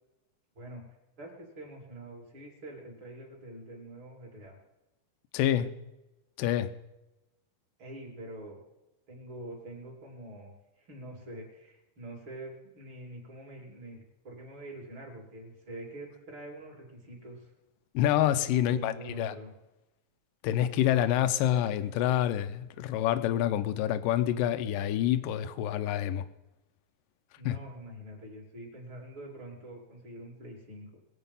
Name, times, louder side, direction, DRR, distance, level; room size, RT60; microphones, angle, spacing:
voice 1, 1.2-4.6 7.8-8.6 9.1-17.5 18.5-19.5 27.4-31.0, right 1 dB, 35° right, -2 dB, 3.7 m, -45 dB
voice 2, 5.3-5.7 6.4-6.7 17.9-19.3 20.4-26.2 27.5-27.6, left 11 dB, 85° left, 12 dB, 2.4 m, -27 dB
21.5 x 8.1 x 5.6 m, 0.97 s
omnidirectional pair, 3.8 m